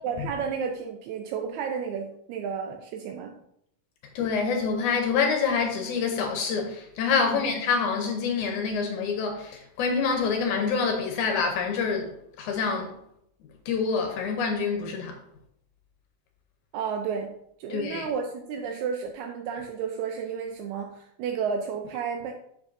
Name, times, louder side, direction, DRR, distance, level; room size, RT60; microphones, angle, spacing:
voice 1, 0.0-3.3 7.2-7.4 16.7-17.3 17.6-22.3, right 6 dB, 80° right, 1.7 m, -32 dB
voice 2, 4.2-13.0 13.7-15.2 17.7-18.1, left 5 dB, 75° left, 2.1 m, -26 dB
7.1 x 6.9 x 2.6 m
omnidirectional pair, 3.8 m